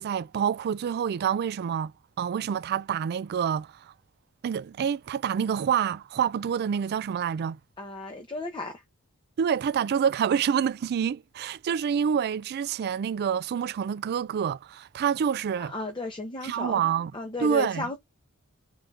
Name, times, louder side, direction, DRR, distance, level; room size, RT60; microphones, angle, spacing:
voice 1, 0.0-1.9 2.2-3.9 4.4-7.6 9.4-15.7 16.4-17.1 17.4-17.9, right 8 dB, 50° right, 0.3 m, -27 dB
voice 2, 7.8-8.8 15.6-16.8 17.1-18.0, left 3 dB, 20° left, 0.7 m, -34 dB
3.9 x 3.6 x 3.3 m
head